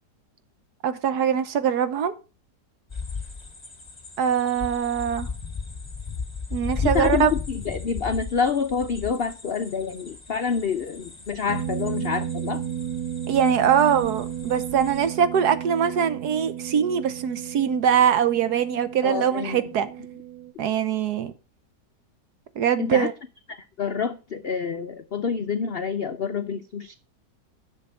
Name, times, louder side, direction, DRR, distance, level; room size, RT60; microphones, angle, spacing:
voice 1, 0.8-2.1 4.2-5.3 6.5-7.3 13.3-19.9 20.6-21.3 22.6-23.1, right 8 dB, 65° right, 1.4 m, -22 dB
sound 1, 2.9-15.1, left 4 dB, 15° left, 1.5 m, -36 dB
voice 2, 6.8-12.7 19.0-19.6 22.8-23.1 23.5-26.9, left 6 dB, 75° left, 0.5 m, -27 dB
sound 2, 11.5-20.5, right 10 dB, 90° right, 1.5 m, -33 dB
10.5 x 6.8 x 4.3 m
omnidirectional pair, 1.9 m